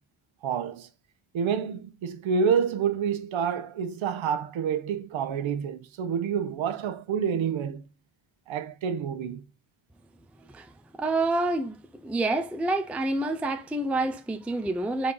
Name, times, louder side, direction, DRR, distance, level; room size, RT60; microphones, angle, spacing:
voice 1, 0.4-0.9 1.3-7.8 8.5-9.4, right 7 dB, 70° right, 1.1 m, -28 dB
voice 2, 11.0-11.8 12.0-15.1, right 2 dB, 5° right, 0.5 m, -27 dB
5.1 x 4.2 x 5.5 m
wide cardioid pair, 160°, 48 cm